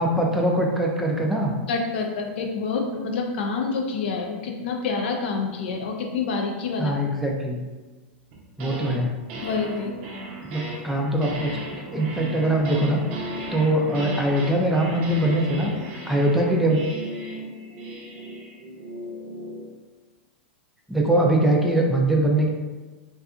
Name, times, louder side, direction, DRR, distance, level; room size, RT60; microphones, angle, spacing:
voice 1, 0.0-1.6 6.8-7.6 8.6-9.2 10.5-11.6 11.9-13.0 13.5-15.7 16.1-16.8 20.9-22.5, right 1 dB, 5° right, -1 dB, 0.3 m, -22 dB
voice 2, 1.7-6.9 9.4-10.0, left 4 dB, 70° left, 2 dB, 0.5 m, -27 dB
sound 1, 8.3-9.0 9.3-19.7, right 1 dB, 55° right, 0.6 m, -36 dB
2.7 x 2.3 x 2.3 m, 1.3 s
hypercardioid pair, 115°, 6 cm